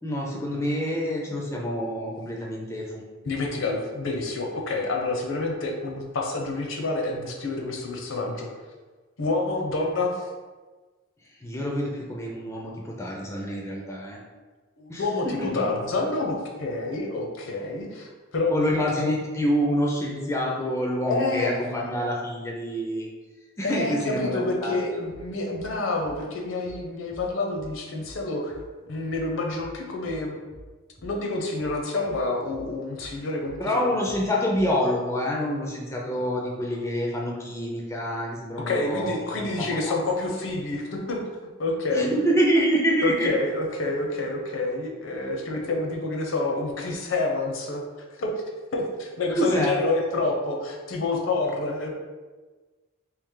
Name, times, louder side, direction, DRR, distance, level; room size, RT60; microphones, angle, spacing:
voice 1, 0.0-3.0 11.4-14.2 14.9-15.7 18.5-23.1 23.6-24.8 33.6-40.0 41.9-43.3 49.3-49.7, equal, 15° left, -2 dB, 0.4 m, -27 dB
voice 2, 3.2-8.5 9.2-10.3 14.8-19.1 21.1-21.5 23.6-28.6 28.8-30.4 31.0-34.1 38.7-41.2 41.6-42.2 43.0-47.8 48.1-48.3 48.7-51.9, left 2 dB, 70° left, 1 dB, 0.7 m, -28 dB
sound 1, 25.1-25.3 25.6-25.8 26.0-26.2 26.6-26.8 27.1-27.3 27.6-27.8 28.0-28.2 28.5-28.7 29.1-29.3 29.6-29.8 30.0-30.2 30.5-30.7 31.0-31.2 31.6-31.8 32.1-32.3 32.5-32.7 33.0-33.2 33.4-33.6 34.1-34.3 34.5-34.7, right 1 dB, 30° right, 0.8 m, -46 dB
3.2 x 2.9 x 3.6 m, 1.3 s
head